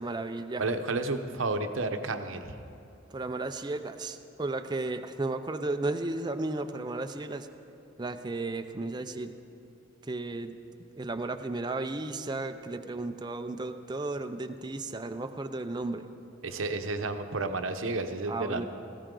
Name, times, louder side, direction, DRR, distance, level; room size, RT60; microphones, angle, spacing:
voice 1, 0.0-0.6 3.1-7.5 8.0-9.3 10.0-10.6 11.0-16.0 18.3-18.7, right 2 dB, 20° right, 8 dB, 0.5 m, -34 dB
voice 2, 0.6-2.6 16.4-18.7, right 3 dB, 75° right, 7 dB, 0.9 m, -31 dB
18.5 x 16.0 x 3.8 m, 2.9 s
head